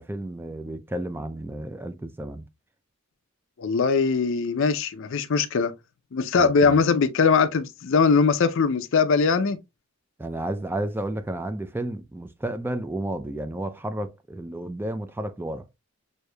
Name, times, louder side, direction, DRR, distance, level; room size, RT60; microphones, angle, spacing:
voice 1, 0.0-2.5 6.4-6.8 10.2-15.6, right 1 dB, 10° right, 0.3 m, -32 dB
voice 2, 3.6-5.7 6.1-9.6, left 5 dB, 60° left, 0.5 m, -21 dB
6.3 x 2.7 x 2.2 m
head